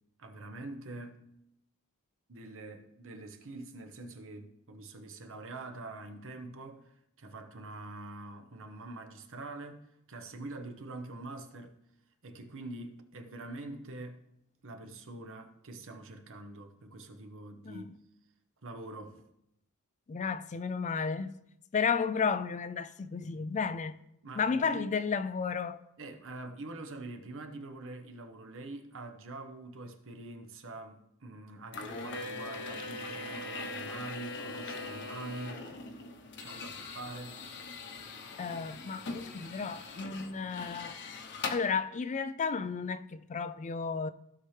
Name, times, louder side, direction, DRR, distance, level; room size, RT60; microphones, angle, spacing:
voice 1, 0.2-1.3 2.3-6.9 7.2-11.8 12.2-14.2 14.6-18.0 18.6-19.2 24.2-24.9 26.0-35.6 36.4-37.4, right 2 dB, 60° right, 1.0 m, -45 dB
voice 2, 20.1-21.3 21.7-24.0 24.4-25.8 38.4-41.0 41.5-44.1, left 5 dB, 35° left, 0.4 m, -33 dB
sound 1, 31.7-41.6, left 3 dB, 55° left, 1.0 m, -41 dB
15.5 x 5.7 x 3.3 m
head